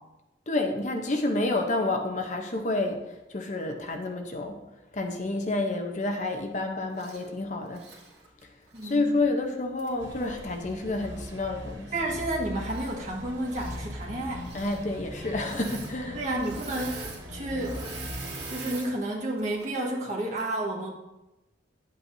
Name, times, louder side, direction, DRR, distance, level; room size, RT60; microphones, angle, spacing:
voice 1, 0.5-3.0 3.3-4.6 4.9-7.8 8.8-11.9 14.5-16.2, left 2 dB, 40° left, 4 dB, 0.8 m, -29 dB
Engine / Mechanisms, 6.9-7.3 7.7-9.0 9.8-9.9 12.6-13.1 13.4-13.8 14.4-14.8 15.3-15.9 16.2-18.9 19.4-19.7, right 3 dB, 65° right, 2.2 m, -42 dB
voice 2, 8.7-9.2 11.9-14.5 16.1-17.0 17.3-17.8 18.5-20.9, right 1 dB, 40° right, -1 dB, 1.6 m, -31 dB
sound 1, 10.0-18.5, left 1 dB, 85° right, 2.2 m, -40 dB
10.5 x 8.5 x 2.7 m, 0.98 s
head